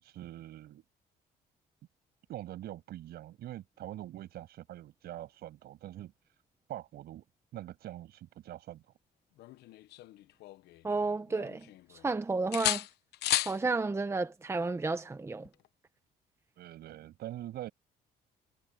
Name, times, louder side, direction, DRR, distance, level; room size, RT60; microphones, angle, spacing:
voice 1, 0.0-0.8 2.3-6.1 6.7-7.2 7.5-8.8 16.6-17.7, right 13 dB, 70° right, 7.3 m, -44 dB
sound 1, 9.4-10.9 11.3-12.1 12.5-13.6 15.4-15.7, left 16 dB, 75° left, 0.9 m, -34 dB
voice 2, 10.8-11.7 12.0-12.8 13.4-15.5, right 3 dB, 15° right, 1.1 m, -31 dB
cardioid pair, 110°, 17 cm